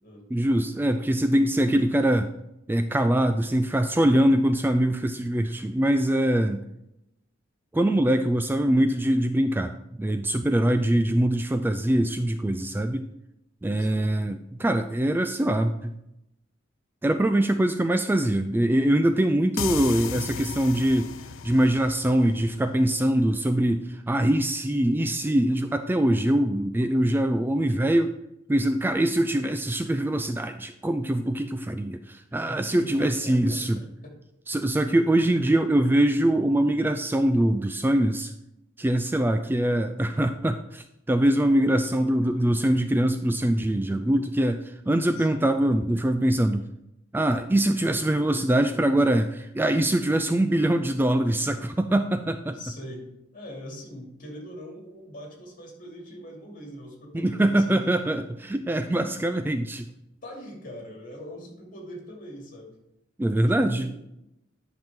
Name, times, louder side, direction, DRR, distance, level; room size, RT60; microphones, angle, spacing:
voice 1, 0.3-2.3 2.7-6.7 7.7-9.7 10.0-13.1 13.6-15.9 17.0-21.1 21.4-28.1 28.5-33.8 34.5-38.3 38.8-46.7 47.1-52.5 57.1-59.9 63.2-63.9, right 1 dB, 10° right, 8 dB, 0.3 m, -23 dB
voice 2, 13.8-14.1 32.5-34.2 35.5-35.7 41.8-42.1 45.1-45.5 52.5-53.1 53.3-57.9 58.9-59.2 60.2-62.8 63.6-63.9, equal, 45° left, -1 dB, 2.6 m, -42 dB
sound 1, 19.6-23.1, left 7 dB, 75° left, 0.5 m, -35 dB
10.5 x 5.9 x 3.6 m, 0.83 s
head